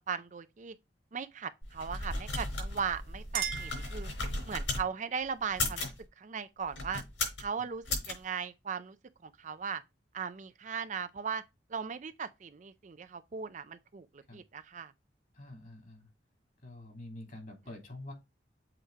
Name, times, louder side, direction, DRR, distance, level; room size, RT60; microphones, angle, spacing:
voice 1, 0.1-0.7 1.1-4.1 4.5-5.9 6.2-7.0 7.4-9.0 9.2-9.8 10.1-11.4 11.7-14.9, right 6 dB, 45° right, 0.5 m, -38 dB
sound 1, 1.6-4.8 5.4-6.0 6.7-7.5 7.9-8.1, left 2 dB, 85° left, 4.5 m, -35 dB
Chink clink, 2.9-4.6, right 9 dB, 60° right, 1.0 m, -39 dB
voice 2, 15.4-16.1 16.6-18.1, left 1 dB, 50° left, 2.8 m, -46 dB
7.8 x 3.2 x 4.6 m
head